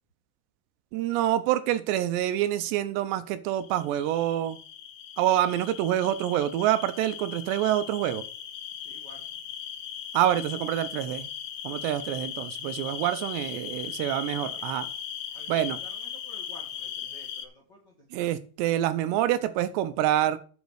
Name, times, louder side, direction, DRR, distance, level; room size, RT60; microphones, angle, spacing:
voice 1, 0.9-4.6 5.2-8.2 10.1-11.3 11.6-14.9 15.5-15.8 18.1-20.4, right 12 dB, 80° right, 12 dB, 2.7 m, -26 dB
sound 1, 3.5-17.5, left 9 dB, 85° left, 3.6 m, -38 dB
voice 2, 8.7-9.4 13.5-14.0 14.4-14.6 15.3-18.3, left 1 dB, 45° left, -1 dB, 1.4 m, -53 dB
8.3 x 6.5 x 6.3 m, 0.39 s
omnidirectional pair, 5.2 m